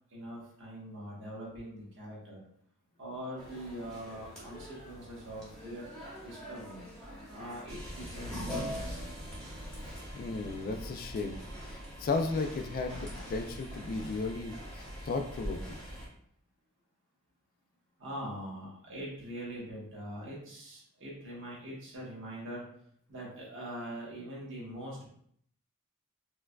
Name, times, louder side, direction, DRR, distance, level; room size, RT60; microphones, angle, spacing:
voice 1, 0.1-2.4 3.0-5.9 6.2-6.8 7.3-8.9 18.0-22.6 23.1-25.1, right 1 dB, 60° right, -5 dB, 1.2 m, -43 dB
sound 1, 3.4-16.1, equal, 5° left, 1.0 m, -43 dB
voice 2, 9.8-11.4 11.7-15.8, left 3 dB, 40° left, 6 dB, 0.3 m, -35 dB
4.4 x 2.3 x 2.2 m, 0.66 s
head